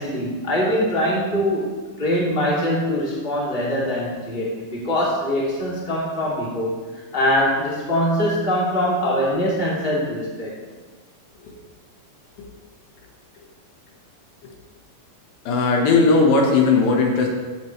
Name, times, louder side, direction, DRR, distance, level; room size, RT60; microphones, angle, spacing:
voice 1, 0.0-6.7 7.1-10.6, equal, 15° left, -6 dB, 2.3 m, -23 dB
voice 2, 15.5-17.3, left 3 dB, 85° left, -1 dB, 3.2 m, -17 dB
16.0 x 6.7 x 3.2 m, 1.4 s
omnidirectional pair, 4.0 m